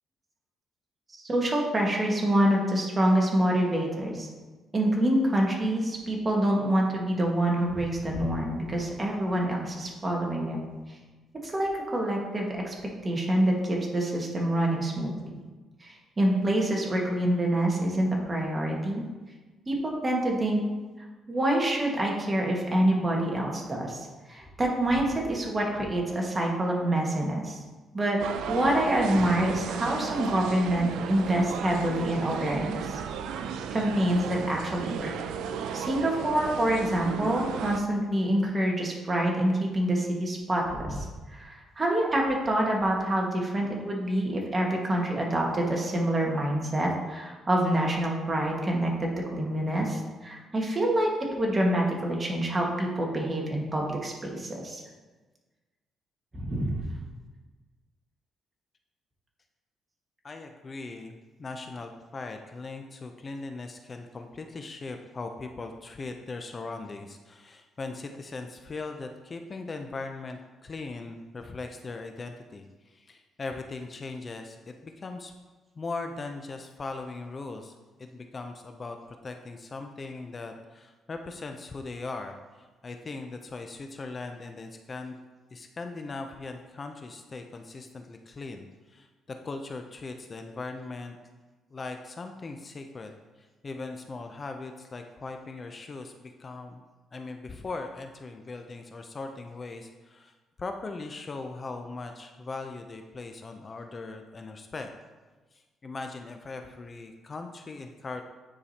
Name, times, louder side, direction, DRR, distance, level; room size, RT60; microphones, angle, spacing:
voice 1, 1.1-4.3 4.7-10.6 11.4-12.7 13.0-15.3 15.8-19.0 19.7-20.6 21.3-27.6 27.9-28.2 28.5-33.0 33.7-35.1 35.7-54.8 56.3-56.8, right 1 dB, 25° right, -1 dB, 1.6 m, -26 dB
sound 1, 28.2-37.8, right 7 dB, 85° right, 0.4 m, -34 dB
voice 2, 60.2-75.3 75.8-79.0 79.2-85.2 85.5-91.2 91.7-93.1 93.4-96.8 97.1-104.9 105.5-108.2, left 3 dB, 35° left, 5 dB, 0.5 m, -39 dB
9.6 x 4.8 x 2.8 m, 1.3 s
cardioid pair, 90°, 0 cm